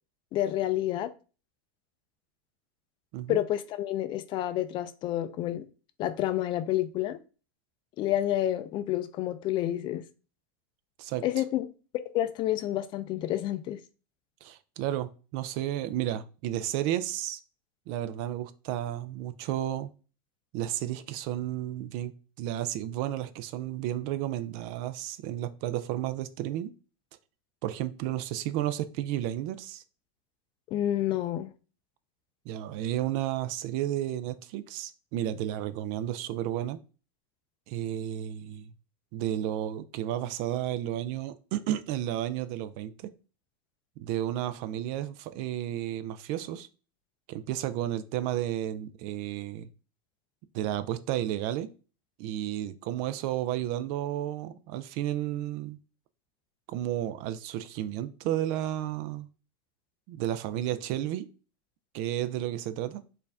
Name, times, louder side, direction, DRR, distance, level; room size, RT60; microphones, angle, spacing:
voice 1, 0.3-1.1 3.3-5.7 6.0-7.2 8.0-10.0 11.2-11.7 12.1-13.8 30.7-31.5, left 13 dB, 40° left, 11 dB, 0.4 m, -29 dB
voice 2, 14.4-17.4 17.9-19.9 20.5-22.1 22.4-26.7 27.6-29.8 32.5-36.8 37.7-38.7 39.1-42.9 44.0-46.7 47.3-49.7 50.5-51.7 52.2-55.8 56.7-59.3 60.1-61.3 61.9-63.0, right 12 dB, 55° right, 12 dB, 0.4 m, -32 dB
4.4 x 2.5 x 3.4 m, 0.35 s
supercardioid pair, 120°, 12 cm